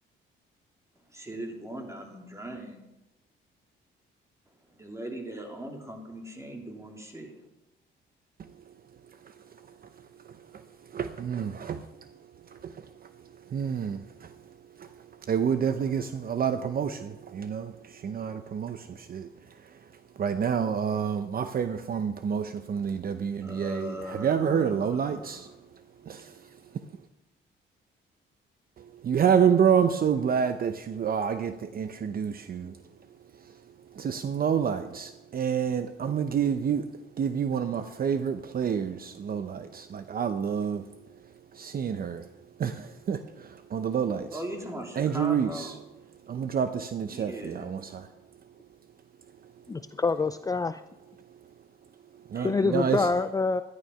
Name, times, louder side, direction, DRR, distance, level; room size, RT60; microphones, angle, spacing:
voice 1, 0.9-2.8 4.7-7.4 23.4-25.5 44.3-45.8 47.1-47.6 52.3-53.1, right 1 dB, 15° right, 2 dB, 3.1 m, -39 dB
voice 2, 8.4-8.7 9.1-25.5 26.0-26.9 28.8-32.8 33.3-36.9 37.2-42.3 42.6-44.4 45.0-45.7 46.2-48.1 49.4-49.5 51.4-51.5 52.1-53.1, right 7 dB, 50° right, 10 dB, 0.8 m, -29 dB
voice 3, 49.7-50.8 52.4-53.6, left 4 dB, 20° left, 11 dB, 0.5 m, -26 dB
13.0 x 11.5 x 5.7 m, 0.97 s
cardioid pair, 90°, 20 cm